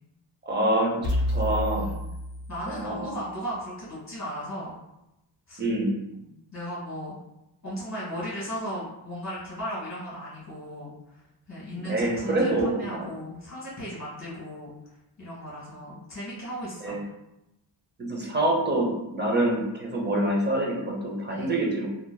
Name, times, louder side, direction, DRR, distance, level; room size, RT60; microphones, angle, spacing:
voice 1, 0.4-1.9 2.7-3.2 5.6-6.0 11.7-13.0 16.8-17.0 18.0-21.9, right 1 dB, 25° right, -2 dB, 0.6 m, -26 dB
sound 1, 1.0-3.1, left 1 dB, 70° left, 0.6 m, -29 dB
voice 2, 1.7-2.1 2.5-4.7 5.5-5.6 6.2-7.2 7.6-11.2 11.5-14.7 15.2-17.0 21.3-21.7, equal, 35° left, -8 dB, 1.3 m, -36 dB
2.9 x 2.4 x 2.2 m, 0.91 s
wide cardioid pair, 135°, 44 cm